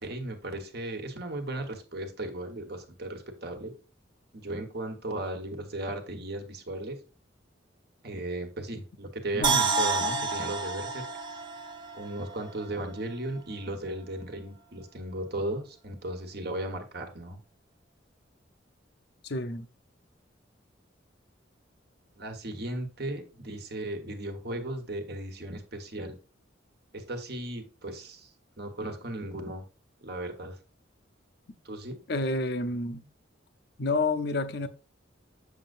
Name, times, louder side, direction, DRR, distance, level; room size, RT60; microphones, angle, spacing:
voice 1, 0.0-3.7 4.3-7.0 8.0-11.1 11.9-17.4 22.2-26.2 26.9-28.3 28.6-29.6 30.0-30.6 31.6-32.0, right 1 dB, 55° right, 1.3 m, -36 dB
voice 2, 9.3-9.7 10.1-10.3 19.2-19.7 32.1-33.1 33.8-34.7, left 2 dB, 60° left, 0.7 m, -29 dB
sound 1, 9.4-12.6 13.0-13.1, right 4 dB, 25° right, 1.0 m, -29 dB
7.3 x 6.5 x 2.6 m
head